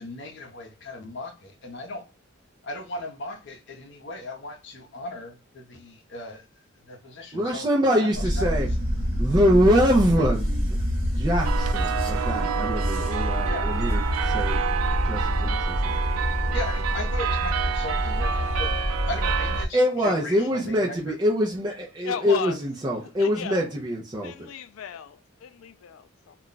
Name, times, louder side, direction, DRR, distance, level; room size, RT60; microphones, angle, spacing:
voice 1, 0.0-2.0 2.6-7.7 8.0-8.5 13.4-13.7 16.5-18.7 19.1-21.0, left 2 dB, 55° left, 0.7 m, -37 dB
voice 2, 7.3-8.7 9.2-16.0 19.7-24.5, equal, 20° right, 0.4 m, -24 dB
sound 1, 8.1-19.7, equal, 40° right, 1.1 m, -27 dB
sound 2, 11.4-19.6, right 6 dB, 85° right, 0.4 m, -28 dB
voice 3, 22.0-22.6 23.2-23.6 24.2-26.4, left 7 dB, 75° left, 0.3 m, -35 dB
2.4 x 2.1 x 3.8 m
head